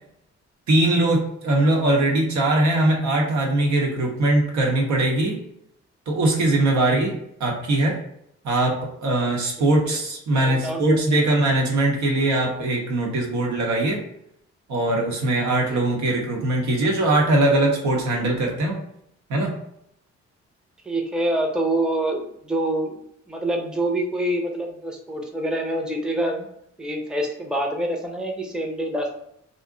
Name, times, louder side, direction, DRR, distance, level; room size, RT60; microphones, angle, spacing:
voice 1, 0.7-5.4 6.1-8.0 8.4-14.0 14.7-18.8 19.3-19.5, right 2 dB, 75° right, 0 dB, 0.9 m, -21 dB
voice 2, 10.4-10.8 11.1-11.2 15.7-15.8 20.8-23.0 23.3-26.5 26.8-29.1, right 1 dB, 5° right, 1 dB, 0.6 m, -26 dB
2.5 x 2.1 x 3.7 m, 0.74 s
cardioid pair, 65°, 29 cm